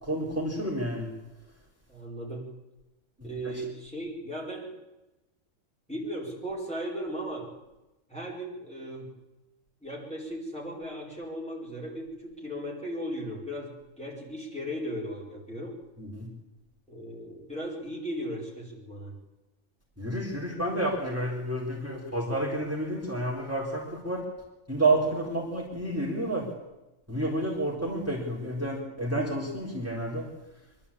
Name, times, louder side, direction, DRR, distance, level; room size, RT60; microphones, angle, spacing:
voice 1, 0.0-1.1 3.2-3.6 16.0-16.3 20.0-24.2 24.7-26.5 27.1-30.3, right 1 dB, 10° right, -4 dB, 4.0 m, -30 dB
voice 2, 1.9-2.5 3.2-4.7 5.9-7.5 8.1-9.1 9.8-15.7 16.9-19.1, equal, 5° left, -4 dB, 4.5 m, -37 dB
24.0 x 13.0 x 8.6 m, 1.0 s
omnidirectional pair, 1.4 m